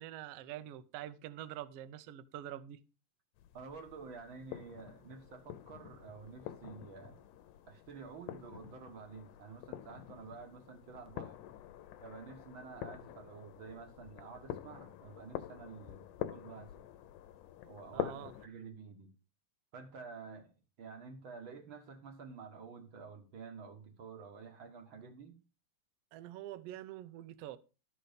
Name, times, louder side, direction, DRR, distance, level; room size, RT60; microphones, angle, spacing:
voice 1, 0.0-2.8 17.9-18.3 26.1-27.6, right 12 dB, 80° right, 1.3 m, -45 dB
sound 1, 3.4-18.5, left 12 dB, 80° left, 2.2 m, -46 dB
voice 2, 3.5-7.2 7.7-11.4 12.0-16.8 17.7-19.1 19.7-20.5 20.8-25.4, right 5 dB, 50° right, 1.7 m, -50 dB
12.5 x 5.4 x 5.1 m
omnidirectional pair, 3.7 m